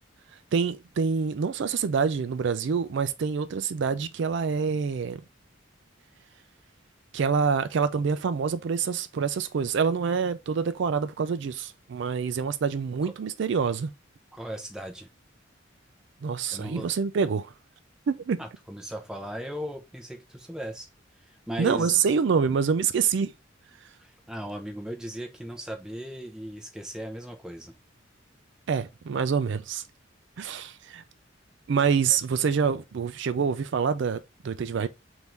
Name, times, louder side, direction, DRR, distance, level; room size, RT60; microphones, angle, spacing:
voice 1, 0.5-5.2 7.1-13.9 16.2-17.5 18.1-18.4 21.6-23.3 28.7-29.8 30.4-31.0 31.7-34.9, right 6 dB, 65° right, 0.4 m, -26 dB
voice 2, 14.3-15.1 16.5-16.9 18.4-20.9 21.2-22.0 24.0-27.7, equal, 5° right, 0.7 m, -37 dB
3.6 x 2.7 x 4.4 m
head